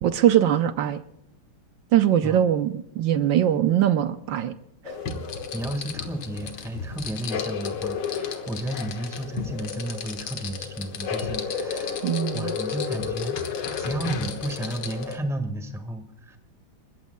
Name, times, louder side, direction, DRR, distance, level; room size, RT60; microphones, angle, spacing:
voice 1, 0.0-1.0 1.9-4.5 4.8-4.9 12.0-12.5, right 10 dB, 70° right, 11 dB, 1.3 m, -21 dB
sound 1, 4.8-15.2, left 6 dB, 90° left, 2.3 m, -32 dB
voice 2, 5.5-12.0 12.3-13.4 13.8-16.4, right 1 dB, ahead, 7 dB, 1.2 m, -33 dB
29.5 x 14.5 x 2.2 m, 0.82 s
omnidirectional pair, 2.3 m